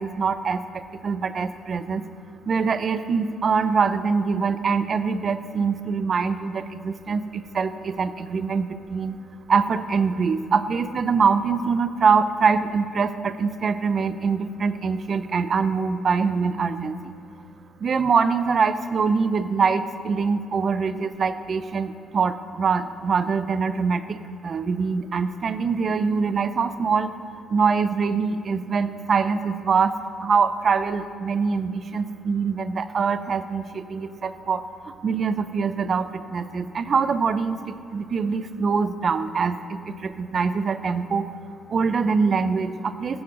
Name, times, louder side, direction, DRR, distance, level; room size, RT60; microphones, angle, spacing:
voice 1, 0.0-2.1 2.5-9.2 9.5-17.1 17.8-27.2 27.5-41.3 41.7-43.2, right 5 dB, 45° right, 12 dB, 0.6 m, -24 dB
16.0 x 7.1 x 6.4 m, 2.5 s
cardioid pair, 90°, 0 cm